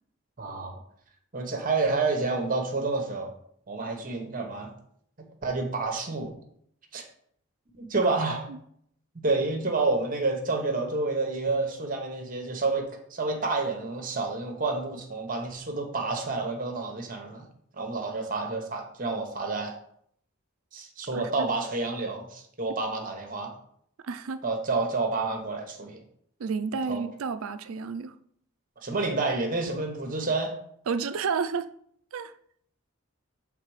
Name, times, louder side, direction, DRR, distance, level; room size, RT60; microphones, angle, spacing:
voice 1, 0.4-0.8 1.3-3.3 3.7-4.7 5.2-6.3 6.9-7.0 7.7-8.5 9.2-17.5 17.7-19.7 20.7-23.5 24.4-26.0 26.9-27.0 28.8-30.5, right 3 dB, 40° right, 1.0 m, -29 dB
voice 2, 21.1-21.5 24.0-24.4 26.4-28.1 30.9-31.7 32.1-32.3, right 5 dB, 75° right, 0.4 m, -31 dB
7.4 x 3.5 x 4.8 m
head